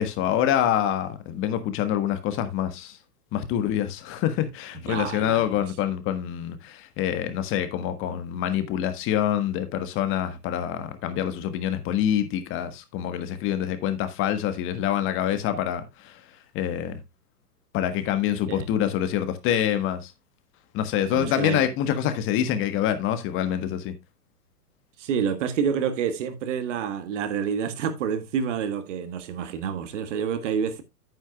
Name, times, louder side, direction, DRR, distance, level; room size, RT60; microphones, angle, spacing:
voice 1, 0.0-3.0 3.3-16.2 16.5-17.0 17.7-20.1 20.7-23.9, left 10 dB, 25° left, 1.4 m, -26 dB
voice 2, 4.9-5.6 18.5-18.7 21.1-21.7 25.0-30.8, right 7 dB, 50° right, 1.7 m, -28 dB
10.0 x 9.3 x 2.3 m
figure-of-eight pair, 115°, 47 cm